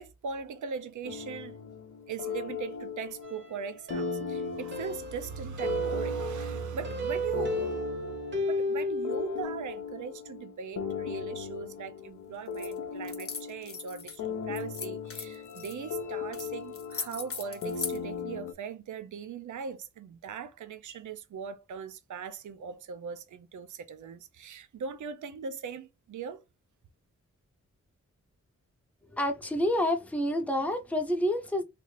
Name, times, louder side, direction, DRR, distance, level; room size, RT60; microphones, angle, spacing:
voice 1, 0.0-1.6 2.1-8.0 8.4-26.4, right 6 dB, 80° right, 0.5 m, -40 dB
sound 1, 1.0-18.5, left 6 dB, 85° left, 0.6 m, -38 dB
sound 2, 3.2-9.4, right 1 dB, 40° right, 0.7 m, -34 dB
Dog leash, 12.5-12.7 13.0-14.2 14.6-15.7 16.3-16.5 16.7-18.0, left 5 dB, 50° left, 0.8 m, -38 dB
voice 2, 29.1-31.6, left 1 dB, 5° left, 0.5 m, -28 dB
3.2 x 2.4 x 3.1 m
wide cardioid pair, 120°, 30 cm